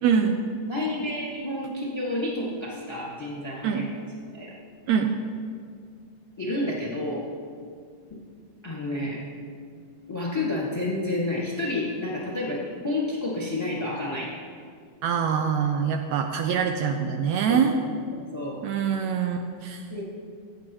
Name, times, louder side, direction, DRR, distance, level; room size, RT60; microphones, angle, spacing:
voice 1, 0.0-0.4 3.6-3.8 4.9-5.1 15.0-17.8 18.6-19.8, right 7 dB, 75° right, 5 dB, 1.7 m, -24 dB
voice 2, 0.7-3.9 4.3-4.5 6.4-7.3 8.6-9.2 10.1-14.4 17.5-17.6 18.1-18.6 19.9-20.0, left 2 dB, 10° left, -4 dB, 1.3 m, -30 dB
16.0 x 9.7 x 3.1 m, 2.1 s
omnidirectional pair, 3.4 m